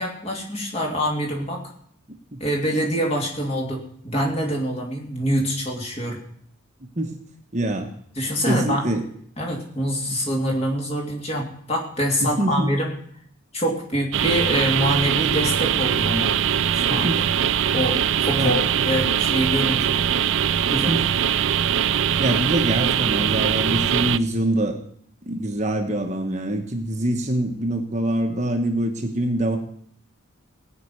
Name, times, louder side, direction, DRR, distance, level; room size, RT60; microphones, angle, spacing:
voice 1, 0.0-1.6 2.4-6.2 8.2-8.8 9.4-12.9 13.5-16.3 16.7-17.2 17.7-20.0 20.7-21.0, equal, 30° left, 0 dB, 2.9 m, -25 dB
voice 2, 7.5-7.9 8.5-9.0 10.1-10.2 12.2-12.7 16.9-17.2 18.3-18.6 20.7-21.1 22.2-24.8 25.3-29.6, right 1 dB, 35° right, 4 dB, 1.3 m, -24 dB
sound 1, 14.1-24.2, right 9 dB, 60° right, 0.5 m, -22 dB
17.0 x 5.9 x 9.6 m, 0.64 s
head